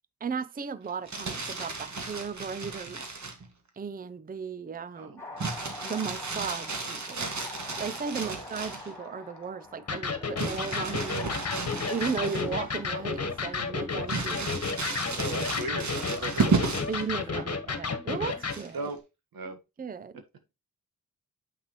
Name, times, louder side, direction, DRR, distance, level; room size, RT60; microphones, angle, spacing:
voice 1, 0.2-3.2 3.8-5.3 5.8-7.3 7.8-11.3 11.9-14.5 16.9-18.8 19.8-20.2, right 6 dB, 25° right, 0.5 m, -36 dB
Crumpling crinkling, 0.9-3.4 5.4-8.9 10.4-12.7 13.1-13.2 14.1-17.0 18.4-18.9, right 4 dB, 55° right, 1.9 m, -33 dB
sound 1, 5.2-13.8, left 3 dB, 5° left, 2.8 m, -45 dB
Electric guitar, 9.9-18.6, left 5 dB, 45° left, 1.4 m, -32 dB
voice 2, 15.1-16.8 17.7-17.8 18.7-19.0 19.3-19.6, right 3 dB, 85° right, 1.4 m, -37 dB
7.5 x 5.7 x 2.9 m
cardioid pair, 60°, 35 cm